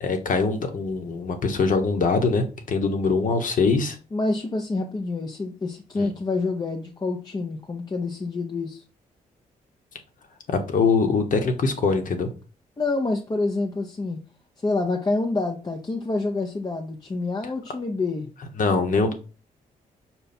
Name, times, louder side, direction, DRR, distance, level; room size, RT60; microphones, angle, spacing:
voice 1, 0.0-4.0 6.0-6.1 10.5-12.3 18.6-19.1, left 4 dB, 60° left, 1.0 m, -23 dB
voice 2, 4.1-8.8 12.8-14.2 14.6-18.3, left 3 dB, 25° left, 0.6 m, -27 dB
5.5 x 2.2 x 4.2 m
cardioid pair, 65°, 15 cm